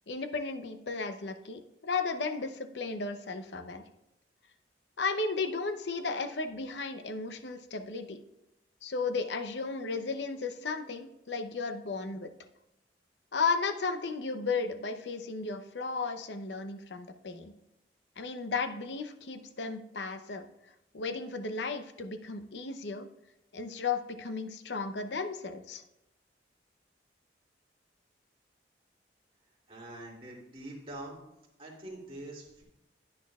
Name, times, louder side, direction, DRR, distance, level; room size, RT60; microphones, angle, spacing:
voice 1, 0.1-3.8 5.0-8.2 8.8-12.3 13.3-17.5 18.2-20.5 20.9-23.1 23.5-25.8, left 4 dB, 75° left, 8 dB, 0.7 m, -34 dB
voice 2, 29.7-31.2 31.6-32.6, right 1 dB, 30° right, -4 dB, 2.4 m, -44 dB
10.5 x 9.7 x 2.4 m, 0.90 s
head